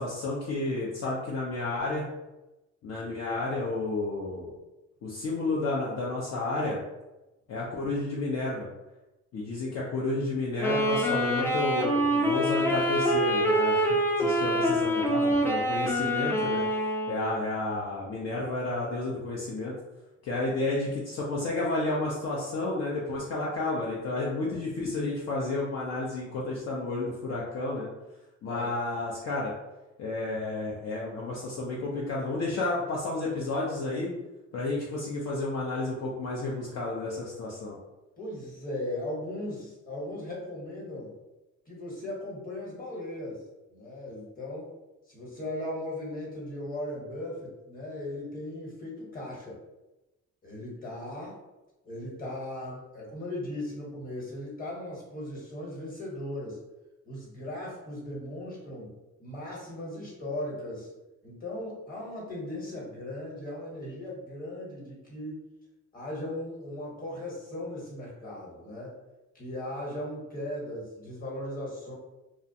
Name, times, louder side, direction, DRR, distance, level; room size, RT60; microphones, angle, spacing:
voice 1, 0.0-2.1 2.8-4.5 5.0-6.8 7.5-8.7 9.3-16.7 17.1-19.7 20.2-27.9 28.4-29.5 30.0-34.1 34.5-37.7, left 2 dB, 60° left, -4 dB, 0.6 m, -31 dB
Wind instrument woodwind instrument, 10.6-17.5, equal, 10° left, 0.4 m, -26 dB
voice 2, 38.2-41.1 41.7-43.4 43.7-44.7 45.1-49.6 50.4-51.4 51.8-56.6 57.0-58.9 59.2-60.9 61.2-65.4 65.9-69.0 69.3-71.9, left 1 dB, 30° left, -4 dB, 1.1 m, -37 dB
2.4 x 2.1 x 2.7 m, 1.0 s
cardioid pair, 90°, 30 cm